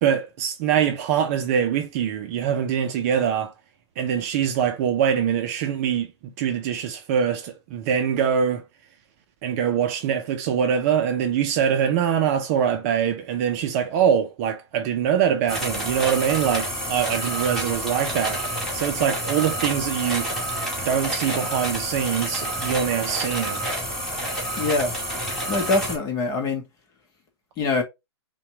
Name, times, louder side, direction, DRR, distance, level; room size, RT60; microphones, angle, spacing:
voice 1, 0.0-3.5 4.0-8.6 9.4-20.3 20.8-23.6, right 8 dB, 35° right, 0.6 m, -23 dB
sound 1, 15.5-26.0, equal, ahead, 1.8 m, -29 dB
voice 2, 24.6-24.9 25.5-26.6 27.6-27.8, left 3 dB, 25° left, 1.1 m, -23 dB
5.6 x 2.4 x 3.0 m
hypercardioid pair, 125°, 14 cm